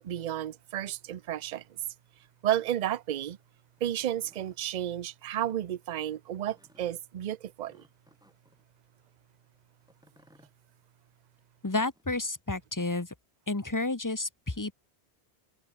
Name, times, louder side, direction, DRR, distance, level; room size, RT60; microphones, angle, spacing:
voice 1, 0.0-1.8 2.4-3.4 3.8-7.8, right 11 dB, 50° right, 0.6 m, -32 dB
sound 1, 3.7-4.6 5.3-5.6 6.5-6.9 7.7-8.6 9.8-10.5 11.7-12.4, equal, 5° right, 5.2 m, -63 dB
voice 2, 11.6-13.1 13.5-14.7, left 2 dB, 15° left, 1.3 m, -31 dB
omnidirectional pair, 1.2 m